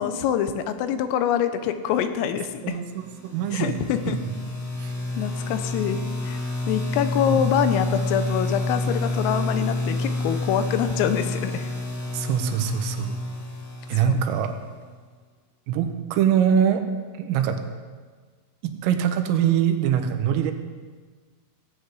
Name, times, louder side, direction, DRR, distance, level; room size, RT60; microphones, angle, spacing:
voice 1, 0.0-2.8 3.5-4.2 5.2-6.4 6.7-11.7 14.0-14.2, left 9 dB, 85° left, 9 dB, 3.6 m, -25 dB
voice 2, 2.6-3.8 4.1-4.3 4.8-4.9 7.3-7.4 12.1-13.2 13.9-14.5 15.7-16.8 17.2-17.6 18.8-20.5, right 8 dB, 85° right, 6 dB, 3.7 m, -23 dB
sound 1, 2.9-14.7, left 2 dB, 40° left, 2.9 m, -29 dB
18.0 x 8.0 x 8.3 m, 1.5 s
omnidirectional pair, 5.8 m